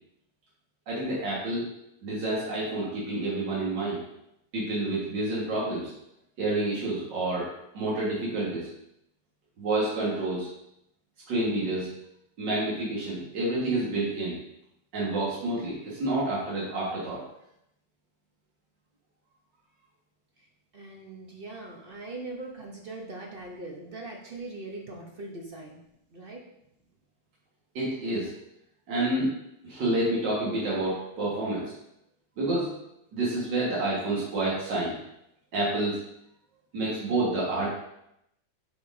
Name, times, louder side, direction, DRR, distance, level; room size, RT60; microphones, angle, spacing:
voice 1, 0.9-1.7 2.0-4.0 4.5-5.9 6.4-7.5 7.7-8.7 9.6-10.5 11.3-11.9 12.4-14.4 14.9-17.2 27.8-28.3 28.9-29.3 29.6-31.6 32.4-32.7 33.1-34.9 35.5-36.0 36.7-37.7, right 2 dB, 85° right, -6 dB, 2.1 m, -28 dB
voice 2, 20.7-25.8 26.1-26.4, right 2 dB, 55° right, 0 dB, 0.6 m, -41 dB
8.5 x 4.3 x 2.6 m, 0.80 s
omnidirectional pair, 1.9 m